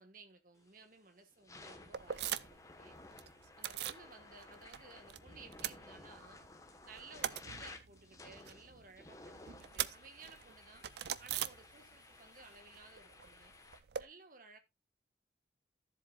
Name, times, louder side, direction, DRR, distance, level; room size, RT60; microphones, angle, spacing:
voice 1, 0.0-2.5 2.8-3.0 3.6-6.4 6.8-10.8 11.2-13.5 14.0-14.6, right 4 dB, 50° right, 1.3 m, -57 dB
sound 1, 0.6-0.9 1.3-13.8, left 2 dB, 20° left, 1.1 m, -56 dB
sound 2, 1.9-2.7 3.0-4.1 4.4-5.2 5.4-6.5 6.8-12.2 12.4-14.0, right 10 dB, 65° right, 0.4 m, -42 dB
13.5 x 7.5 x 2.3 m
head